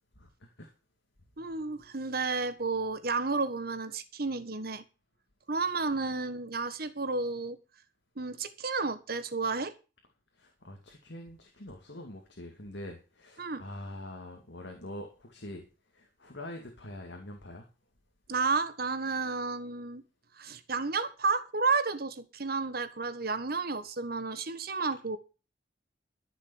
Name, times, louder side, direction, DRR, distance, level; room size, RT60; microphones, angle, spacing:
voice 1, 0.2-0.7 10.3-15.7 15.9-17.7, left 1 dB, 65° left, 3 dB, 2.5 m, -44 dB
voice 2, 1.4-4.8 5.5-7.6 8.2-9.7 13.4-13.6 18.3-20.0 20.4-25.2, right 4 dB, 50° right, 12 dB, 1.4 m, -31 dB
14.0 x 6.7 x 7.2 m, 0.33 s
head